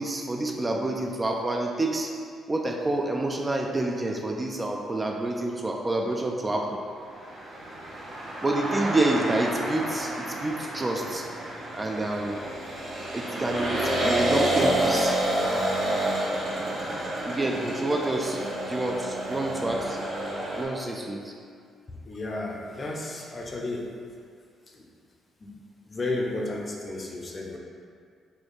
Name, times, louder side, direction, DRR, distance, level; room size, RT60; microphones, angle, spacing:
voice 1, 0.0-2.1 2.5-6.8 8.4-11.2 11.7-12.4 13.1-15.2 17.2-18.4 18.7-20.0 20.6-21.3, right 2 dB, 20° right, 1 dB, 0.3 m, -28 dB
sound 1, 7.2-20.6, right 1 dB, 55° right, 0.9 m, -29 dB
voice 2, 22.1-23.9 25.4-25.5 25.9-27.6, left 2 dB, 35° left, 0 dB, 0.5 m, -32 dB
4.2 x 2.3 x 3.2 m, 2.2 s
cardioid pair, 90°, 0 cm